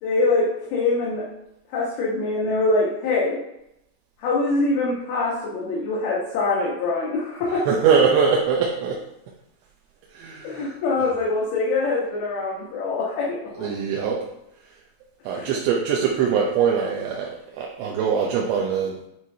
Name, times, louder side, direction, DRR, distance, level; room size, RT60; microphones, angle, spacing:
voice 1, 0.0-1.3 1.7-3.4 4.2-7.6 10.4-13.7 15.3-15.5, left 3 dB, 70° left, -6 dB, 3.0 m, -24 dB
voice 2, 7.7-9.0 10.1-11.1 13.6-14.3 15.3-19.1, right 6 dB, 85° right, -1 dB, 2.9 m, -22 dB
9.1 x 4.5 x 2.7 m, 0.83 s
omnidirectional pair, 4.9 m